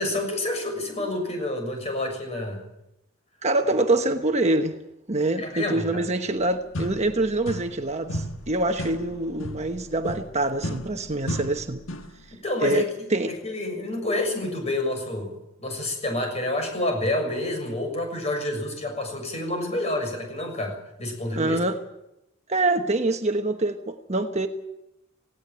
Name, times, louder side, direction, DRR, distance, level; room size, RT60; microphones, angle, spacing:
voice 1, 0.0-2.6 5.4-6.0 12.4-12.9 13.2-21.6, left 1 dB, 35° left, 6.8 m, -28 dB
voice 2, 3.4-4.8 5.1-11.8 12.6-12.8 13.1-13.3 21.3-21.8 22.5-24.5, right 2 dB, 35° right, 1.1 m, -25 dB
sound 1, 6.4-6.5 6.7-7.8 8.1-12.2, equal, 80° left, 1.4 m, -35 dB
18.0 x 17.5 x 9.1 m
head